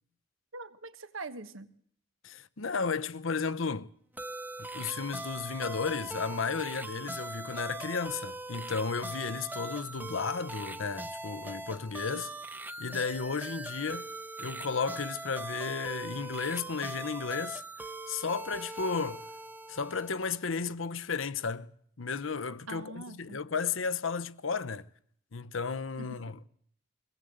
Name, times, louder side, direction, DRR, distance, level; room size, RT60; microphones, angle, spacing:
voice 1, 0.5-1.7 22.7-23.4 26.0-26.3, right 3 dB, 85° right, 1.4 m, -43 dB
voice 2, 2.2-3.9 4.6-12.3 12.8-14.1 14.4-17.6 18.1-19.2 19.7-21.7 22.0-24.9 25.3-26.5, left 5 dB, 80° left, 0.9 m, -33 dB
sound 1, 4.2-20.3, right 2 dB, 10° right, 0.8 m, -41 dB
22.5 x 18.5 x 7.9 m
head